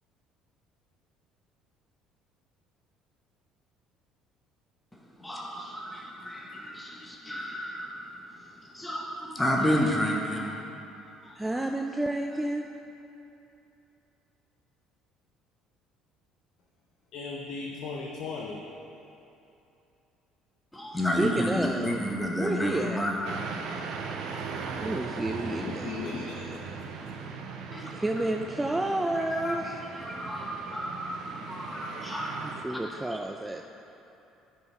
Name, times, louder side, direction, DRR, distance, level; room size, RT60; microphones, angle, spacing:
voice 1, 5.2-8.0 8.7-10.6 11.3-11.7 20.7-23.4 23.7-23.8 27.7-27.9 29.1-33.0, equal, 10° left, -1 dB, 0.9 m, -31 dB
voice 2, 11.4-12.7 21.2-22.0 22.4-23.1 24.8-25.9 27.9-29.8 32.6-33.7, right 1 dB, 10° right, 4 dB, 0.4 m, -30 dB
voice 3, 17.1-18.6 25.6-26.6, left 4 dB, 60° left, -1 dB, 0.6 m, -37 dB
sound 1, 23.2-32.6, right 5 dB, 60° right, 0.6 m, -38 dB
10.5 x 4.3 x 4.5 m, 2.9 s
figure-of-eight pair, 55°, 0 cm